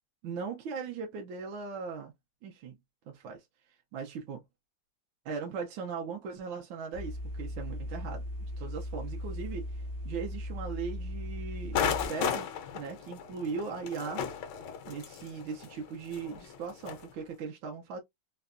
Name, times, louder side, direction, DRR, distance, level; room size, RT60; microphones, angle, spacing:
voice 1, 0.2-2.1 2.4-2.8 3.1-3.4 3.9-4.4 5.2-8.2 8.6-9.7 10.0-12.5 12.7-14.3 14.9-18.0, right 5 dB, 80° right, 1.5 m, -39 dB
sound 1, 6.9-12.1, left 1 dB, 55° right, 0.7 m, -38 dB
sound 2, 11.7-17.1, left 8 dB, 75° left, 1.3 m, -35 dB
3.8 x 2.2 x 2.4 m
omnidirectional pair, 2.1 m